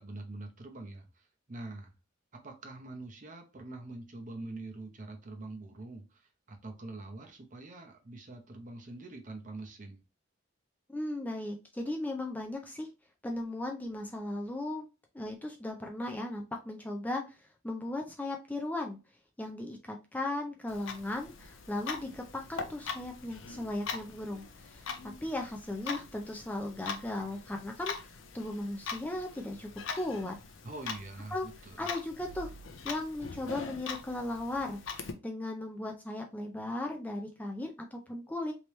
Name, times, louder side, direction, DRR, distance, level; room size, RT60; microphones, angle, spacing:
voice 1, 0.0-1.9 2.3-10.0 30.6-31.9, right 2 dB, 40° right, 4 dB, 0.8 m, -45 dB
voice 2, 10.9-12.9 13.2-14.9 15.1-19.0 19.4-29.7 30.0-30.3 31.3-31.5 31.8-32.5 32.8-35.0 35.2-38.5, left 2 dB, 10° left, 2 dB, 0.4 m, -37 dB
Clock, 20.7-35.1, left 5 dB, 70° left, 0.6 m, -42 dB
3.3 x 2.9 x 3.0 m, 0.29 s
head